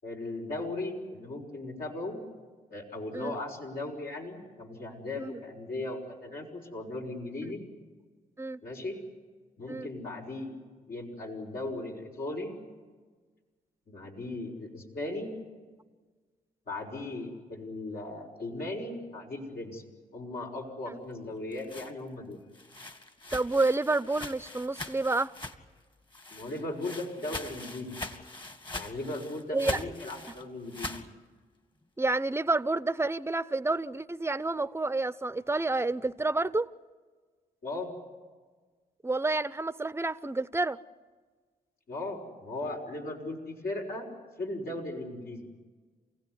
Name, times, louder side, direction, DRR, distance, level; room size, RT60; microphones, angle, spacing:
voice 1, 0.0-2.3 2.7-7.6 8.6-9.0 9.6-10.6 10.9-12.6 13.9-15.3 16.7-19.8 20.1-22.4 26.3-27.9 28.7-31.0 37.6-37.9 41.9-44.1 44.4-45.5, left 2 dB, 65° left, 5.8 m, -37 dB
sound 1, 21.3-25.8 26.1-31.1, left 2 dB, 30° left, 2.2 m, -42 dB
voice 2, 23.3-25.3 29.5-29.8 32.0-36.7 39.0-40.8, right 2 dB, 15° right, 0.9 m, -29 dB
28.5 x 16.5 x 9.7 m
cardioid pair, 60°, 17 cm